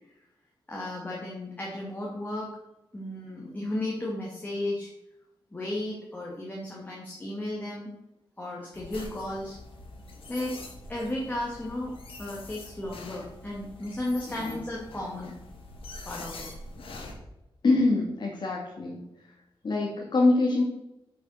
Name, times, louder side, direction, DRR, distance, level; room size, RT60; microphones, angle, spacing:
voice 1, 0.7-2.5 2.9-4.9 5.5-7.9 8.4-9.6 10.3-10.6 10.9-11.9 12.2-15.3 16.1-16.5, left 1 dB, 20° left, -3 dB, 2.2 m, -34 dB
sound 1, 8.7-17.1, left 2 dB, 75° left, 2.7 m, -44 dB
voice 2, 14.3-14.6 17.6-19.0 19.6-20.6, left 2 dB, 55° left, -3 dB, 2.2 m, -24 dB
9.2 x 7.2 x 6.4 m, 0.88 s
wide cardioid pair, 155°, 9 cm